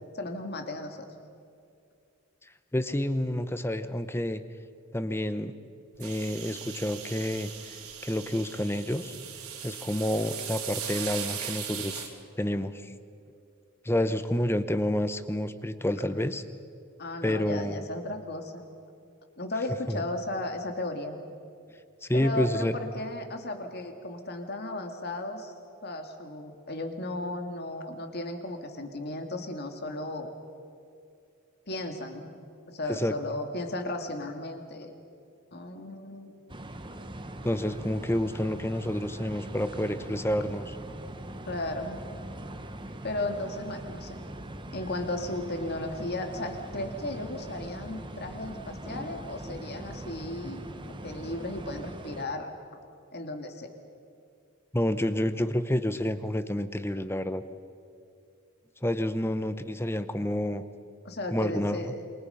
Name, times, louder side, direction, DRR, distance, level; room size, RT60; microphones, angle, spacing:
voice 1, 0.1-1.0 17.0-18.7 19.4-21.2 22.1-25.5 25.8-30.3 31.7-32.3 32.7-34.9 35.5-36.3 41.5-42.0 43.0-44.2 44.7-52.6 53.1-53.7 61.0-62.0, left 1 dB, 45° left, 5 dB, 2.2 m, -35 dB
voice 2, 2.7-4.4 4.9-5.5 6.0-7.8 8.0-9.1 9.6-12.9 13.8-16.4 17.2-17.9 19.9-20.0 22.0-22.8 32.9-33.1 37.4-40.8 54.7-57.4 58.8-60.6 61.3-61.8, left 1 dB, 10° left, 12 dB, 0.8 m, -29 dB
sound 1, 6.0-12.1, right 8 dB, 85° right, 3.4 m, -39 dB
sound 2, 36.5-52.2, right 1 dB, 20° right, 1.2 m, -41 dB
28.0 x 24.0 x 5.7 m, 2.5 s
head